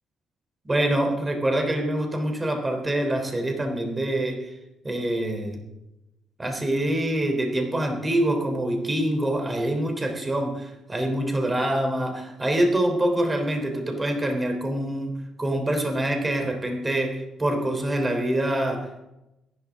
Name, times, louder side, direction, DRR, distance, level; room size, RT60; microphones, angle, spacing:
voice 1, 0.7-4.5 4.8-5.6 6.4-15.1 15.4-19.0, right 1 dB, 20° right, 3 dB, 3.5 m, -25 dB
22.0 x 11.5 x 3.7 m, 0.92 s
cardioid pair, 90°, 0 cm